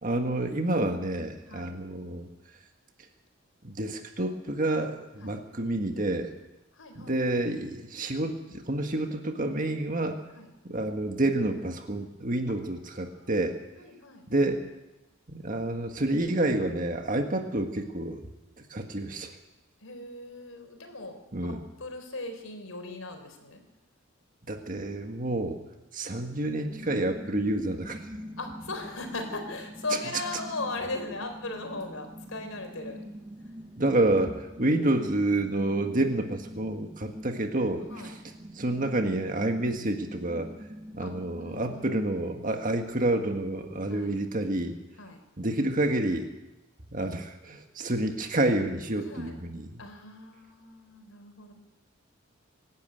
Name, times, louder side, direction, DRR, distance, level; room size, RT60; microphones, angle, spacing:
voice 1, 0.0-2.3 3.6-6.3 6.9-10.2 10.6-13.6 14.3-14.6 15.3-18.3 18.7-19.4 21.3-21.6 24.5-25.6 25.9-28.1 33.8-38.2 38.5-40.5 40.9-44.8 45.4-46.3 46.9-49.8, right 1 dB, 40° right, 5 dB, 1.6 m, -29 dB
voice 2, 6.7-7.2 10.3-10.5 12.5-12.6 13.0-13.3 13.8-14.3 17.3-17.4 19.8-23.6 28.4-33.0 37.9-38.2 41.0-41.1 41.4-42.0 42.4-42.7 43.9-44.1 45.0-45.2 49.0-49.4 49.8-51.5, left 3 dB, 85° left, 6 dB, 4.4 m, -38 dB
sound 1, 26.6-41.8, equal, 20° right, 1.0 m, -44 dB
24.0 x 12.0 x 9.2 m, 1.0 s
head